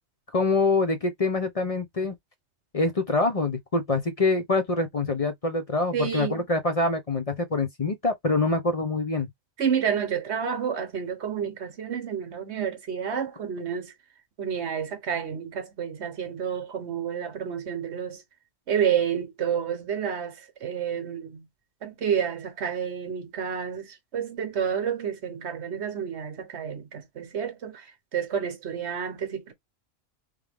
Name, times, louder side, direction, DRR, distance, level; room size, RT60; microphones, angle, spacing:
voice 1, 0.3-2.1 2.7-9.3, left 3 dB, 35° left, 0.7 m, -25 dB
voice 2, 5.9-6.4 9.6-13.9 14.4-18.2 18.7-21.4 21.8-23.9 24.1-27.8 28.1-29.5, right 8 dB, 60° right, 1.2 m, -29 dB
3.6 x 3.2 x 3.4 m
omnidirectional pair, 1.3 m